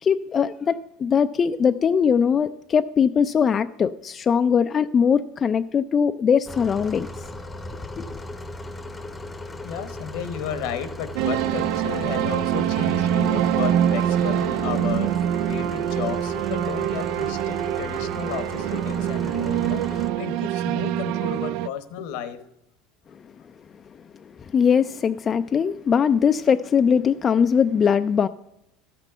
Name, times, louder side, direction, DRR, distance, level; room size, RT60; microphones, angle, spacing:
voice 1, 0.0-7.1 8.0-8.1 24.5-28.3, left 7 dB, 30° left, 11 dB, 0.3 m, -21 dB
sound 1, 6.5-20.1, left 1 dB, 15° left, 0.8 m, -37 dB
voice 2, 9.6-15.2 15.5-22.5, left 7 dB, 75° left, 12 dB, 1.0 m, -33 dB
sound 2, 11.2-21.7, right 11 dB, 65° right, 0.4 m, -24 dB
12.5 x 6.0 x 6.8 m, 0.86 s
supercardioid pair, 110°, 0 cm